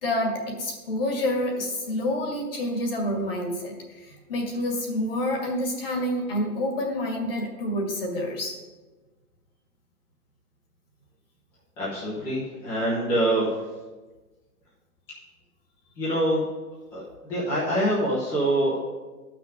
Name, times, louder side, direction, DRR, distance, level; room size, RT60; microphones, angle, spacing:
voice 1, 0.0-8.6, left 1 dB, 35° left, 1 dB, 2.0 m, -28 dB
voice 2, 11.8-13.5 16.0-16.4 16.9-17.0 17.3-18.8, right 1 dB, 10° left, -10 dB, 1.0 m, -25 dB
12.0 x 6.0 x 5.1 m, 1.2 s
hypercardioid pair, 175°, 47 cm